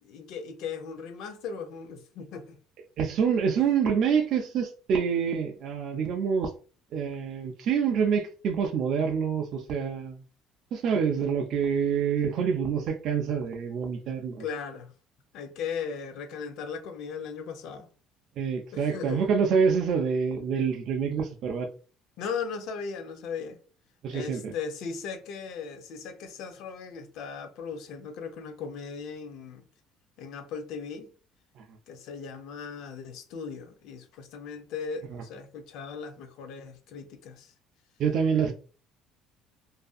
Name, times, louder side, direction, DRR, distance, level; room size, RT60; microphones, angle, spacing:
voice 1, 0.0-2.6 14.4-14.9 15.3-17.9 18.7-19.3 22.2-23.6 24.1-29.6 30.2-31.1 31.9-37.5, left 6 dB, 60° left, 0.5 m, -37 dB
voice 2, 3.0-6.5 6.9-10.2 10.7-14.5 18.4-21.7 24.0-24.5 31.6-31.7 35.1-35.2 38.0-38.5, right 6 dB, 45° right, 0.3 m, -26 dB
2.6 x 2.5 x 2.3 m
cardioid pair, 175°, 0 cm